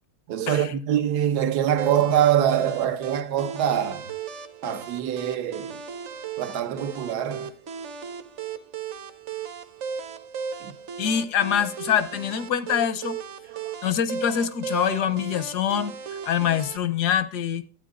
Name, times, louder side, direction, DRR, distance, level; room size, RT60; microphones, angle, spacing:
voice 1, 0.3-4.1 4.6-5.8 6.4-7.5 10.6-10.8 13.5-13.8, right 10 dB, 85° right, 1.4 m, -24 dB
sound 1, 1.8-16.8, right 6 dB, 55° right, 1.0 m, -36 dB
voice 2, 11.0-13.2 13.8-17.6, left 9 dB, 85° left, 1.4 m, -25 dB
12.5 x 9.1 x 2.4 m
omnidirectional pair, 1.7 m